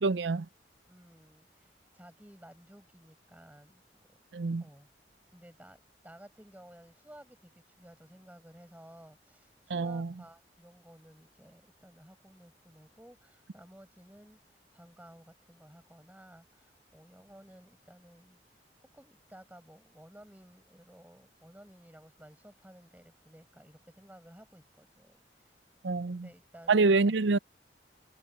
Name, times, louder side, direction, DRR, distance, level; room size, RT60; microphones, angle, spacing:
voice 1, 0.0-0.5 4.3-4.6 9.7-10.1 25.8-26.3 26.7-27.4, right 3 dB, 80° right, 0.6 m, -26 dB
voice 2, 0.9-4.1 4.6-4.9 5.3-18.4 18.9-25.5 26.1-27.0, equal, 10° right, 7.9 m, -55 dB
head